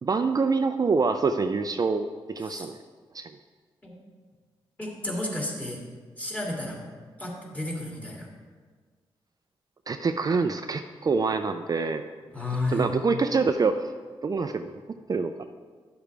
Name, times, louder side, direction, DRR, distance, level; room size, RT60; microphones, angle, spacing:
voice 1, 0.0-2.8 3.1-3.3 9.9-12.1 12.7-13.9 14.2-14.8 15.1-15.5, right 4 dB, 40° right, 7 dB, 0.4 m, -26 dB
voice 2, 4.8-5.8 6.2-6.8 7.2-8.3 12.3-12.9, left 2 dB, 15° left, -3 dB, 2.6 m, -32 dB
11.5 x 6.9 x 3.4 m, 1.5 s
cardioid pair, 65°, 10 cm